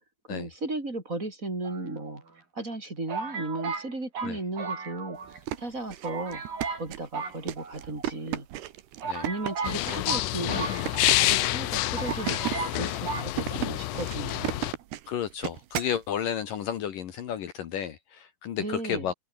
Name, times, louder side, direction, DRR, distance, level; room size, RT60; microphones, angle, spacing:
voice 1, 0.3-6.4 6.8-8.5 9.2-10.7 11.1-12.4 12.7-14.6 18.6-19.1, right 2 dB, 20° right, 4.4 m, -35 dB
sound 1, 1.6-2.4 3.1-5.4 5.7-5.8 6.0-6.9 7.1-8.1 8.6-8.7 9.0-11.3 11.6-11.7 12.0-12.8 13.1-13.3, right 5 dB, 60° right, 7.4 m, -35 dB
sound 2, 5.2-16.0, right 13 dB, 90° right, 3.4 m, -36 dB
sound 3, 9.6-14.7, left 16 dB, 80° left, 1.8 m, -28 dB
voice 2, 15.1-19.1, left 9 dB, 65° left, 3.0 m, -32 dB
open air
omnidirectional pair, 4.5 m